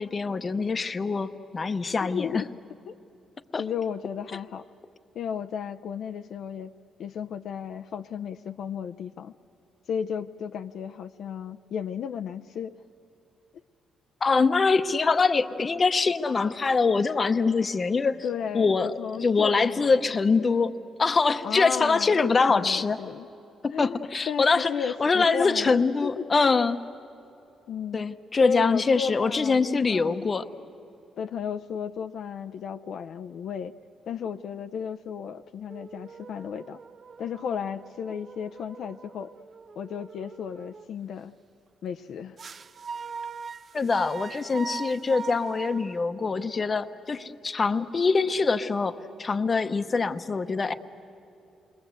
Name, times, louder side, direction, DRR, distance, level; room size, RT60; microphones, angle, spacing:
voice 1, 0.0-2.4 3.5-3.6 14.2-18.2 18.5-18.9 19.2-20.7 21.0-23.0 23.6-24.7 25.0-26.8 27.9-30.4 43.7-50.7, left 4 dB, 30° left, 11 dB, 0.8 m, -24 dB
voice 2, 2.0-2.5 2.9-3.0 3.6-4.6 5.1-6.7 7.0-9.3 9.9-12.7 18.2-20.0 21.4-22.2 22.5-23.3 23.7-24.0 24.3-26.3 27.7-28.1 28.4-30.3 31.2-33.7 34.1-36.8 37.2-39.3 39.8-41.3 41.8-42.4, left 7 dB, 65° left, 7 dB, 0.5 m, -34 dB
sound 1, 35.7-40.8 42.4-46.8, right 5 dB, 40° right, 0.6 m, -41 dB
28.5 x 22.0 x 8.1 m, 2.9 s
cardioid pair, 125°, 0 cm